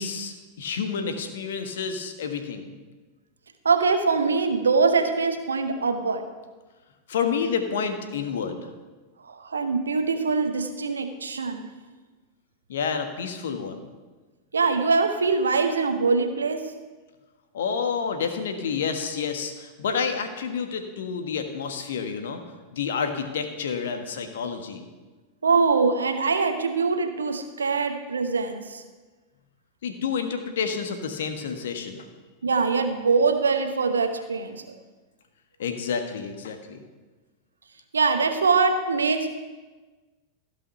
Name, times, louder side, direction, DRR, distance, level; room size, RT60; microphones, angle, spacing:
voice 1, 0.0-2.7 7.1-8.6 12.7-13.8 17.5-22.4 22.7-24.8 29.8-32.1 35.6-36.8, left 6 dB, 60° left, 6 dB, 1.2 m, -29 dB
voice 2, 3.6-6.3 9.2-11.7 14.5-16.7 25.4-28.8 32.4-34.6 37.9-39.3, right 4 dB, 70° right, 7 dB, 0.8 m, -23 dB
15.5 x 5.6 x 5.7 m, 1.3 s
figure-of-eight pair, 90°, 0 cm